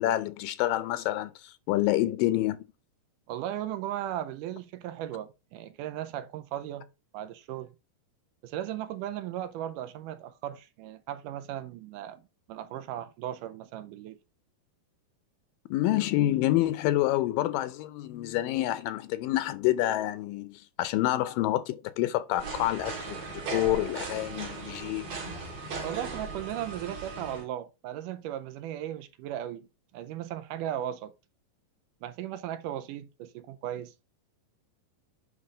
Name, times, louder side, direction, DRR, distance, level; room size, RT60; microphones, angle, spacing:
voice 1, 0.0-2.6 15.7-25.3, left 15 dB, 85° left, 2.2 m, -28 dB
voice 2, 3.3-6.9 7.1-7.7 8.4-12.2 12.5-14.2 25.8-29.7 29.9-31.1 32.0-33.9, right 11 dB, 80° right, 2.1 m, -36 dB
sound 1, 22.4-27.4, right 4 dB, 50° right, 3.2 m, -38 dB
9.7 x 3.4 x 5.0 m
omnidirectional pair, 3.9 m